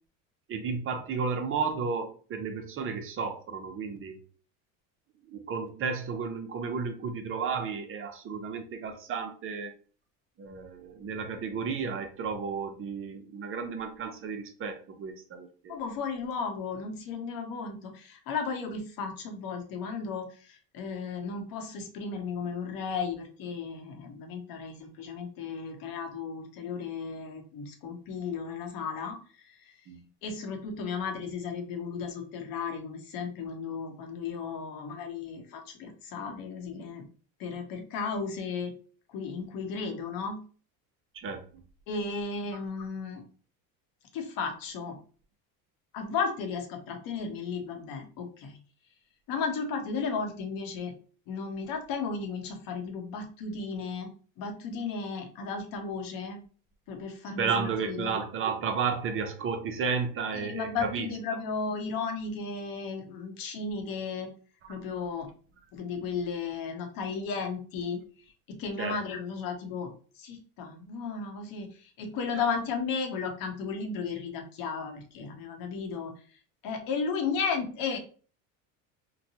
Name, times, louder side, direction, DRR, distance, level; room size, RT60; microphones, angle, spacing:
voice 1, 0.5-4.2 5.3-9.7 10.4-15.8 29.9-30.0 41.1-41.6 57.4-61.1 68.8-69.0, right 5 dB, 30° right, 6 dB, 0.6 m, -33 dB
voice 2, 15.7-29.8 30.2-37.1 37.4-38.7 39.1-40.4 41.9-43.2 44.1-45.0 45.9-48.6 49.3-50.9 51.3-54.1 54.4-56.4 56.9-58.2 60.3-64.3 64.7-65.3 65.7-68.0 68.5-76.1 76.6-78.0, left 5 dB, 55° left, 4 dB, 0.9 m, -34 dB
2.9 x 2.2 x 2.7 m, 0.40 s
supercardioid pair, 95°, 41 cm